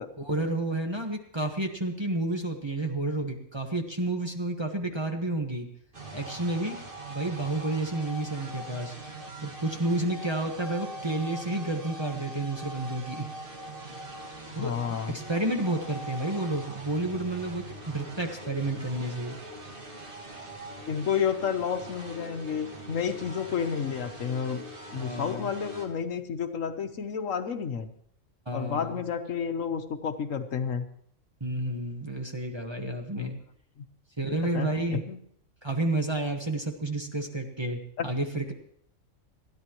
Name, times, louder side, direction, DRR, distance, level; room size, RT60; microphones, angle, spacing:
voice 1, 0.2-5.7 6.1-6.8 7.1-8.9 9.4-13.3 14.5-14.7 15.1-19.4 25.0-25.5 28.5-29.0 31.4-33.4 34.2-35.0 35.6-38.5, right 2 dB, 20° right, 3 dB, 1.3 m, -30 dB
sound 1, 5.9-25.9, right 1 dB, 45° right, 2.2 m, -42 dB
voice 2, 14.6-15.1 20.9-24.6 24.9-27.9 28.5-30.8 33.2-33.3 33.8-33.9 34.4-35.2 38.0-38.1, left 7 dB, 80° left, 7 dB, 1.5 m, -31 dB
29.5 x 10.5 x 3.1 m, 0.66 s
omnidirectional pair, 1.3 m